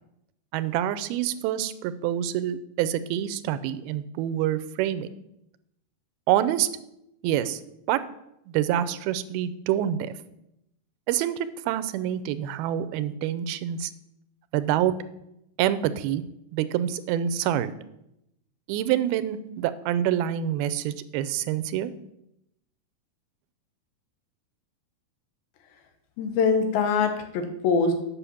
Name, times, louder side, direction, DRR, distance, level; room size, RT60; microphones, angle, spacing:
voice 1, 0.5-5.1 6.3-6.7 7.2-7.6 7.9-8.0 8.5-10.1 11.1-13.9 14.5-14.9 15.6-16.2 16.5-17.7 18.7-21.9, right 11 dB, 90° right, 13 dB, 2.5 m, -26 dB
voice 2, 26.2-27.9, left 5 dB, 80° left, 6 dB, 2.9 m, -23 dB
8.4 x 5.7 x 7.0 m, 0.83 s
omnidirectional pair, 4.3 m